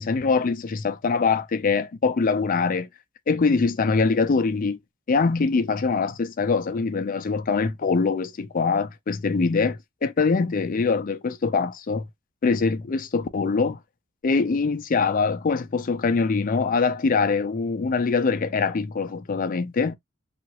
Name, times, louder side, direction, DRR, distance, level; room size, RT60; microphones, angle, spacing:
voice 1, 0.0-2.9 3.3-4.8 5.1-12.0 12.4-13.8 14.2-19.9, left 4 dB, 40° left, 0.4 m, -23 dB
2.8 x 2.4 x 2.9 m
head